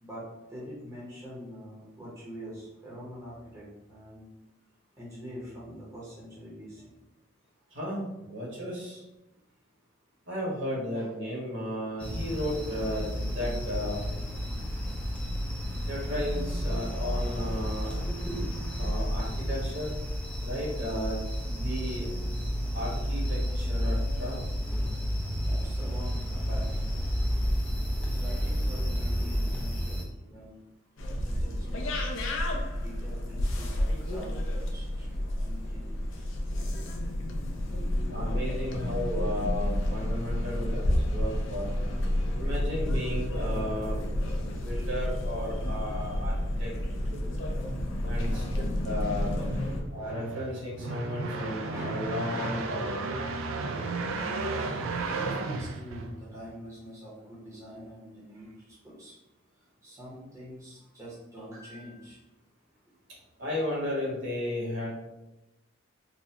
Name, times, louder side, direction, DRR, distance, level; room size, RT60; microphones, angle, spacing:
voice 1, 0.0-4.3 5.0-6.9 10.9-11.1 18.1-18.5 18.8-19.5 25.3-30.7 31.2-36.4 37.4-37.8 47.0-47.5 49.9-50.4 51.7-52.0 52.3-52.7 54.9-59.2 59.5-62.2, equal, 15° right, -8 dB, 0.8 m, -45 dB
voice 2, 7.7-9.0 10.3-14.0 15.8-18.0 18.8-20.0 20.4-22.1 22.7-24.4 38.1-41.7 42.4-44.1 44.4-46.3 46.6-46.7 48.0-48.4 48.8-49.4 49.9-53.0 63.4-64.9, left 1 dB, 60° right, -5 dB, 1.3 m, -34 dB
sound 1, 12.0-30.0, equal, 5° left, 0.4 m, -31 dB
sound 2, 31.0-49.8, left 1 dB, 70° left, 0.5 m, -30 dB
sound 3, 48.9-56.5, right 3 dB, 80° right, 0.4 m, -34 dB
4.0 x 2.2 x 2.8 m, 0.97 s
head